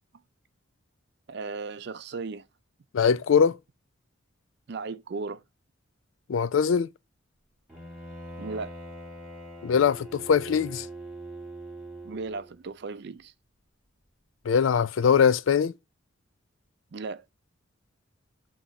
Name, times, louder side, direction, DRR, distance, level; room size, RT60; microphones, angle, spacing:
voice 1, 1.3-2.4 4.7-5.4 8.4-8.7 12.0-13.3 16.9-17.2, right 4 dB, 55° right, 0.4 m, -36 dB
voice 2, 2.9-3.6 6.3-6.9 9.6-10.9 14.5-15.7, left 6 dB, 70° left, 0.4 m, -22 dB
Bowed string instrument, 7.7-12.6, right 1 dB, 5° right, 1.9 m, -42 dB
6.0 x 3.0 x 5.2 m
head